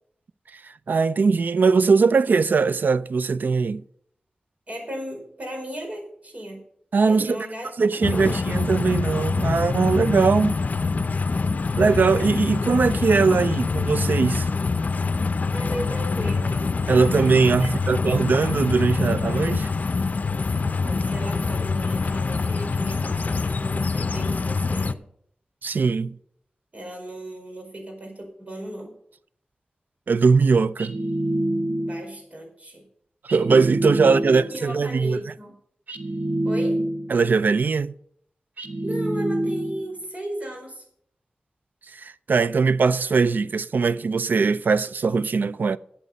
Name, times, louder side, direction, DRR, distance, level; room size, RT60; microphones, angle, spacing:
voice 1, 0.6-3.8 6.9-7.5 7.8-10.6 11.8-14.5 16.9-19.7 25.6-26.2 30.1-31.0 33.3-35.2 37.1-37.9 41.9-45.8, right 4 dB, 85° right, 0.5 m, -20 dB
voice 2, 4.7-6.6 7.0-8.5 15.5-16.7 17.6-18.0 20.8-25.0 26.7-28.9 31.8-32.9 34.0-35.5 36.4-36.8 38.8-40.8, right 1 dB, 50° right, 4.9 m, -36 dB
sound 1, 8.0-24.9, left 4 dB, 60° left, 0.6 m, -25 dB
sound 2, 30.8-32.1 33.3-34.6 35.9-37.2 38.6-39.9, right 1 dB, 65° right, 1.2 m, -26 dB
12.5 x 8.1 x 5.3 m
wide cardioid pair, 80°, 3 cm